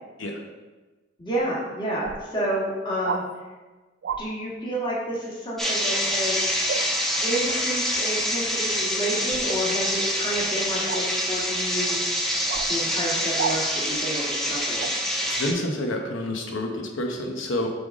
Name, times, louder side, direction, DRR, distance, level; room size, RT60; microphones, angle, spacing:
voice 1, 1.2-3.2 4.2-6.4 7.2-12.0 12.7-14.9, right 1 dB, 25° left, -5 dB, 1.4 m, -30 dB
sound 1, 1.3-1.4 2.0-2.2 3.0-3.3 4.0-4.2 6.7-6.9 9.3-9.5 10.9-11.1 12.5-12.7 13.4-13.6 14.8-14.9, right 6 dB, 60° right, 0.4 m, -30 dB
sound 2, 5.6-15.5, equal, ahead, 0.8 m, -26 dB
voice 2, 15.3-17.7, left 1 dB, 85° left, 2 dB, 0.9 m, -28 dB
7.6 x 3.5 x 3.6 m, 1.3 s
head